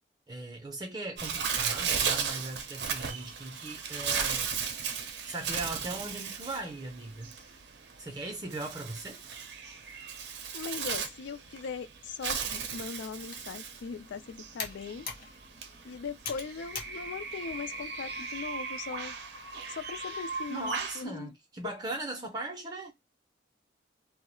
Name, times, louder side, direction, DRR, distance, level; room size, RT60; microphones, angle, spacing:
voice 1, 0.3-4.5 5.2-7.6 8.0-9.2 20.5-22.9, right 2 dB, 20° right, 0.5 m, -39 dB
Bird, 1.2-21.0, right 6 dB, 70° right, 0.5 m, -36 dB
voice 2, 10.5-15.4 15.8-19.2 19.7-21.4, left 5 dB, 80° left, 0.4 m, -40 dB
Computer keyboard, 13.1-18.3, left 4 dB, 50° left, 0.7 m, -45 dB
2.2 x 2.0 x 2.9 m
head